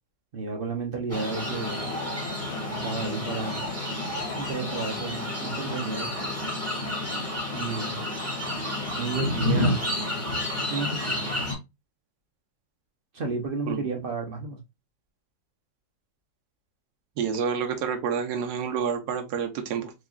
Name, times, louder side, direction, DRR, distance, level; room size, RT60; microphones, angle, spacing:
voice 1, 0.3-1.9 2.7-3.6 4.3-6.2 7.5-8.0 9.0-9.9 10.7-11.3 13.1-14.6, right 4 dB, 50° right, 0.6 m, -32 dB
sound 1, 1.1-11.5, left 1 dB, 10° right, 1.8 m, -30 dB
voice 2, 17.2-19.9, right 6 dB, 65° right, 1.3 m, -28 dB
4.7 x 3.0 x 2.3 m
omnidirectional pair, 2.0 m